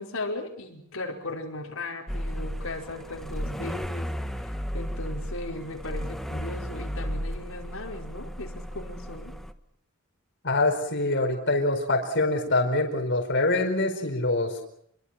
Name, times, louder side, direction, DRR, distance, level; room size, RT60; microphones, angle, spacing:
voice 1, 0.0-4.1 4.4-9.3, left 2 dB, 80° left, 0 dB, 5.1 m, -37 dB
sound 1, 2.1-9.5, equal, ahead, 1.4 m, -34 dB
voice 2, 10.4-14.6, left 2 dB, 60° left, 3 dB, 4.7 m, -25 dB
29.5 x 23.5 x 6.0 m, 0.69 s
head